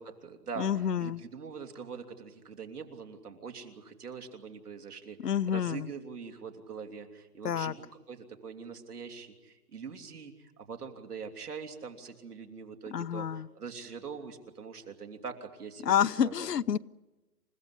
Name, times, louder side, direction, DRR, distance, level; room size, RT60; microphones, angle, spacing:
voice 1, 0.0-15.9 16.2-16.5, right 5 dB, 65° right, 5 dB, 3.2 m, -43 dB
voice 2, 0.6-1.2 5.2-5.9 7.4-7.7 12.9-13.5 15.8-16.8, left 9 dB, 70° left, 18 dB, 0.8 m, -28 dB
28.5 x 16.0 x 9.9 m, 1.1 s
hypercardioid pair, 170°, 49 cm